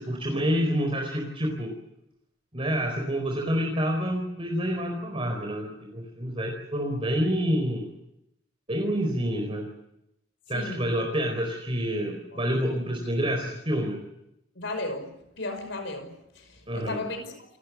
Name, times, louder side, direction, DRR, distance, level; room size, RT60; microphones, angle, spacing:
voice 1, 0.0-1.7 2.5-7.8 8.7-9.7 10.5-14.0 16.7-17.0, equal, 30° right, 2 dB, 4.4 m, -28 dB
voice 2, 10.5-10.9 12.3-12.4 14.6-15.1 15.4-17.6, left 2 dB, 65° left, 7 dB, 5.5 m, -35 dB
28.5 x 14.5 x 9.7 m, 0.82 s
head